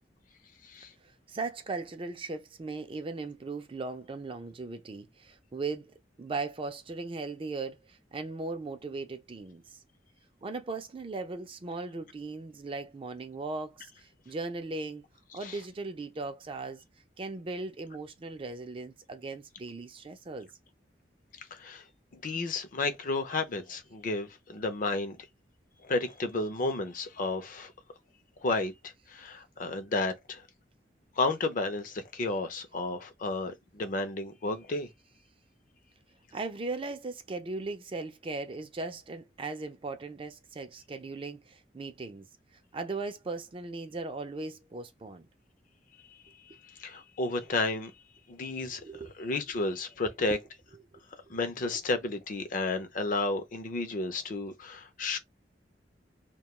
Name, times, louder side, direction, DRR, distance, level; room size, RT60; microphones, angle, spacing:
voice 1, 1.0-9.8 10.4-15.0 15.3-16.8 17.2-20.5 36.3-42.2 42.7-45.3 48.5-49.1, right 3 dB, 30° right, 0.4 m, -38 dB
voice 2, 21.5-21.8 22.1-25.2 25.8-27.7 28.4-28.7 29.1-30.4 31.2-34.9 46.8-47.9 48.3-48.8 49.2-50.4 51.3-55.2, left 3 dB, 50° left, 0.5 m, -32 dB
2.2 x 2.2 x 2.9 m
head